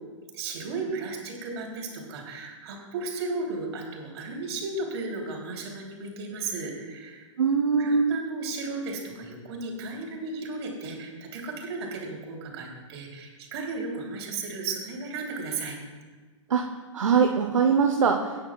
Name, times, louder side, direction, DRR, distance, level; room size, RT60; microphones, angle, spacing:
voice 1, 0.3-7.3 7.8-15.8, right 3 dB, 55° right, 0 dB, 3.1 m, -35 dB
voice 2, 7.4-8.1 16.5-16.7 16.9-18.5, right 5 dB, 75° right, 3 dB, 0.8 m, -22 dB
19.5 x 9.8 x 2.3 m, 1.4 s
figure-of-eight pair, 110°, 16 cm